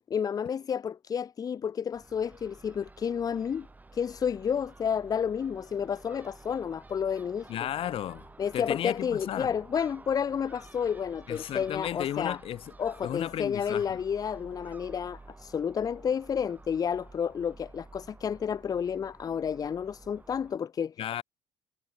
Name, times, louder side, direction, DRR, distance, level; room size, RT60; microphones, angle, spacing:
voice 1, 0.1-3.7 3.9-7.5 8.4-12.4 12.8-20.9, left 7 dB, 35° left, 0.6 m, -31 dB
Crow / Gull seagull, 1.9-20.6, right 3 dB, 15° right, 3.1 m, -52 dB
voice 2, 7.5-8.3 8.5-9.5 11.3-12.7 13.0-14.0 21.0-21.2, left 11 dB, 60° left, 1.4 m, -34 dB
cardioid pair, 110°, 11 cm